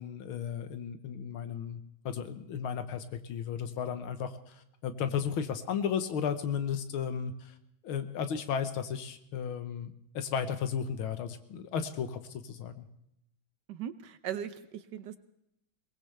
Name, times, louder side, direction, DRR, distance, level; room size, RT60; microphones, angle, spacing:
voice 1, 0.0-7.5 7.8-12.9, left 7 dB, 90° left, 9 dB, 1.9 m, -34 dB
voice 2, 13.7-15.2, right 9 dB, 65° right, 12 dB, 1.2 m, -39 dB
22.5 x 19.0 x 3.3 m, 0.81 s
omnidirectional pair, 2.2 m